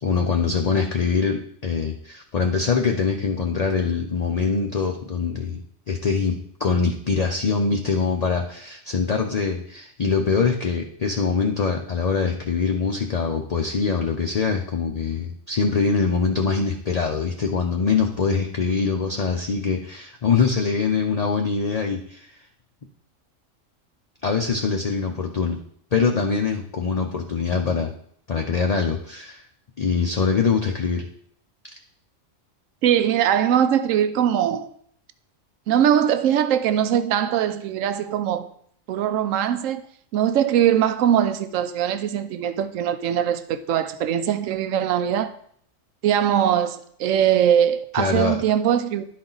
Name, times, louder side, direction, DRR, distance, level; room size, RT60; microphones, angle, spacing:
voice 1, 0.0-22.3 24.2-25.6 25.9-27.9 28.3-29.4 29.8-31.1 47.9-48.4, left 5 dB, 45° left, 0.5 m, -23 dB
voice 2, 32.8-34.7 35.7-38.5 38.9-39.8 40.1-45.3 46.0-49.0, right 9 dB, 80° right, 1.0 m, -21 dB
11.5 x 4.3 x 3.9 m
omnidirectional pair, 1.4 m